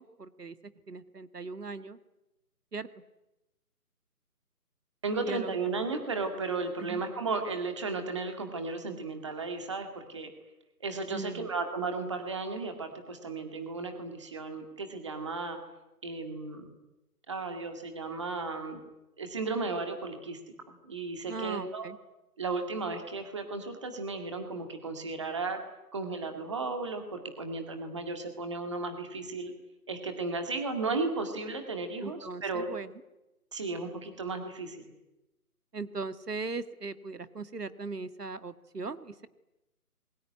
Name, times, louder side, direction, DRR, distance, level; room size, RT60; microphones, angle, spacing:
voice 1, 0.0-2.0 2.7-2.9 5.2-5.6 6.8-7.0 11.1-11.5 21.3-22.0 32.0-32.9 35.7-39.3, right 4 dB, 75° right, 12 dB, 2.0 m, -39 dB
voice 2, 5.0-10.3 10.8-15.6 16.0-16.7 17.3-18.8 19.2-20.4 20.7-21.9 22.4-25.6 25.9-29.5 29.9-32.7 33.5-34.8, right 3 dB, 20° right, 6 dB, 2.1 m, -34 dB
27.5 x 22.5 x 9.6 m, 0.96 s
figure-of-eight pair, 175°, 47 cm